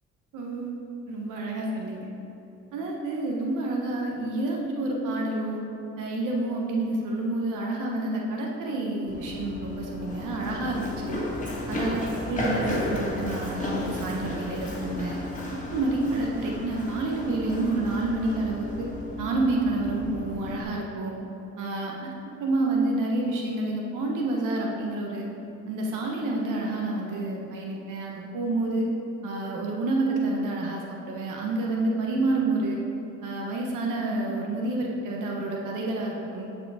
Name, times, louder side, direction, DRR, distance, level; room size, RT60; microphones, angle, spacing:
voice 1, 0.3-0.7 1.1-2.1 2.7-5.6 6.0-11.3 11.7-15.1 15.5-18.9 19.2-21.1 21.6-22.1 22.4-25.3 25.7-28.9 29.2-30.8 31.1-32.8 33.2-36.5, right 2 dB, 85° right, -1 dB, 1.2 m, -29 dB
Run, 9.1-20.6, left 1 dB, 25° left, 1.9 m, -33 dB
11.5 x 4.9 x 4.9 m, 2.9 s
cardioid pair, 90°, 30 cm